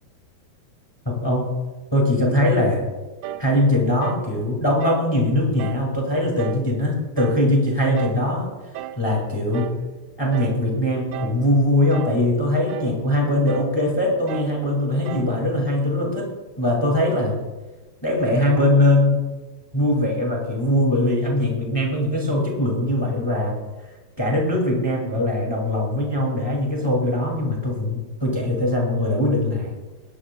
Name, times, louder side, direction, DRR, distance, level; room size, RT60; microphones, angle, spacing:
voice 1, 1.0-1.5 1.9-2.8 3.4-8.5 9.0-9.8 10.2-16.2 16.6-17.4 18.0-19.2 19.7-23.6 24.2-29.7, left 1 dB, 15° left, -1 dB, 0.8 m, -21 dB
sound 1, 3.2-3.5 4.0-4.3 4.8-5.1 5.6-5.9 6.4-6.7 7.2-7.5 8.0-8.3 8.7-9.0 9.5-9.8 10.3-10.6 11.1-11.4 11.9-12.2 12.7-13.0 13.5-13.8 14.3-14.6 15.1-15.4, right 11 dB, 90° right, 1.9 m, -34 dB
19.0 x 11.0 x 2.3 m, 1.2 s
omnidirectional pair, 4.7 m